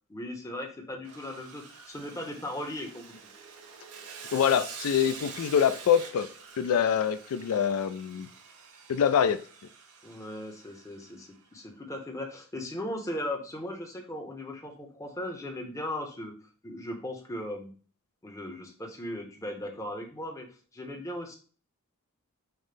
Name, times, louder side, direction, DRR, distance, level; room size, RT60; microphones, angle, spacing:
voice 1, 0.1-3.2 10.0-16.3 16.6-17.7 18.2-20.5 20.7-21.4, left 1 dB, 15° left, 2 dB, 0.7 m, -37 dB
Sawing, 1.0-11.3, right 5 dB, 90° right, 0.8 m, -46 dB
voice 2, 4.3-6.3 6.6-8.3 8.9-9.4, left 8 dB, 90° left, 12 dB, 0.4 m, -25 dB
5.6 x 2.1 x 3.3 m, 0.40 s
head